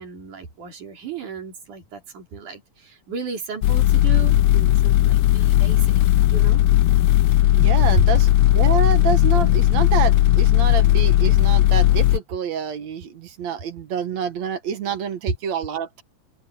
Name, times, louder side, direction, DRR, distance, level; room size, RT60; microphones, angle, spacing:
voice 1, 0.0-6.0 6.3-6.6 8.0-8.1, right 5 dB, 85° right, 5.4 m, -33 dB
sound 1, 3.6-12.2, left 14 dB, 85° left, 1.4 m, -16 dB
voice 2, 7.6-16.0, right 7 dB, 65° right, 2.8 m, -27 dB
open air
omnidirectional pair, 3.4 m